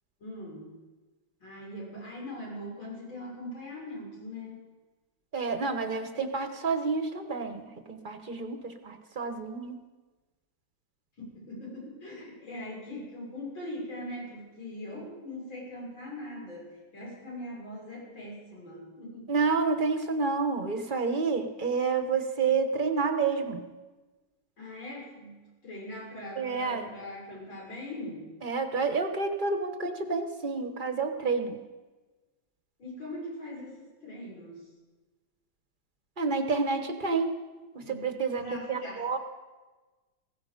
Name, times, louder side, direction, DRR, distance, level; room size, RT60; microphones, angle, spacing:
voice 1, 0.2-0.7 1.4-4.6 11.3-19.4 24.6-28.3 32.8-34.7 37.8-39.2, left 1 dB, 85° left, -4 dB, 7.1 m, -41 dB
voice 2, 5.3-9.8 19.3-23.6 26.4-26.9 28.4-31.6 36.2-37.3 38.0-38.4 38.7-39.2, right 4 dB, 30° right, 7 dB, 1.0 m, -29 dB
16.5 x 16.0 x 5.2 m, 1.2 s
omnidirectional pair, 2.1 m